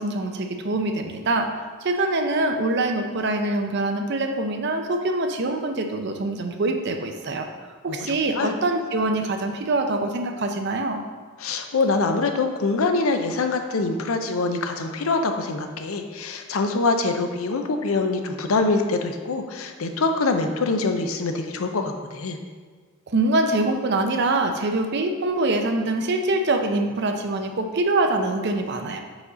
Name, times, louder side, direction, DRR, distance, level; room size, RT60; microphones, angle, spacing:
voice 1, 0.0-1.5 1.8-7.5 7.8-11.0 23.1-29.0, right 2 dB, 55° right, 5 dB, 0.6 m, -24 dB
voice 2, 7.9-8.5 11.4-22.4, left 3 dB, 80° left, 6 dB, 0.6 m, -24 dB
4.9 x 4.1 x 4.9 m, 1.5 s
head